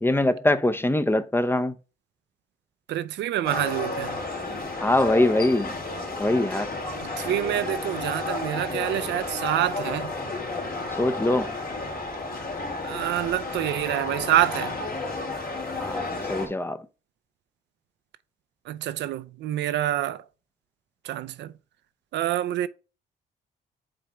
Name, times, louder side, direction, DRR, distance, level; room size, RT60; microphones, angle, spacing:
voice 1, 0.0-1.7 4.8-5.7 6.2-6.7 11.0-11.6 15.8-16.8, left 1 dB, 10° left, 0.6 m, -23 dB
voice 2, 2.9-4.2 7.0-10.2 12.8-14.8 18.7-20.2 21.0-21.5 22.1-22.7, right 13 dB, 75° right, 0.5 m, -27 dB
sound 1, 3.4-16.5, left 3 dB, 55° left, 2.4 m, -32 dB
5.1 x 3.4 x 5.6 m
cardioid pair, 75°, 18 cm